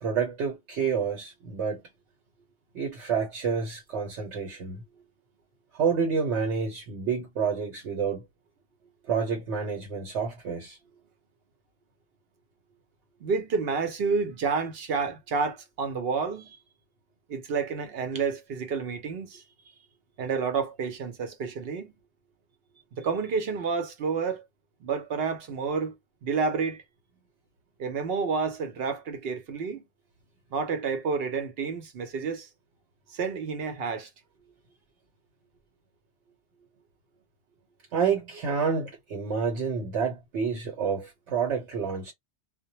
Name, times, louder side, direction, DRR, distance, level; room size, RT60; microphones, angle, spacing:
voice 1, 0.0-1.8 2.7-4.8 5.7-8.2 9.1-10.8 37.9-42.1, right 6 dB, 80° right, 1.1 m, -29 dB
voice 2, 13.2-16.6 17.3-19.4 20.2-21.9 23.0-24.4 24.8-25.9 26.2-26.8 27.8-29.8 30.5-32.5 33.1-34.1, right 5 dB, 65° right, 0.8 m, -29 dB
2.1 x 2.1 x 2.8 m
omnidirectional pair, 1.2 m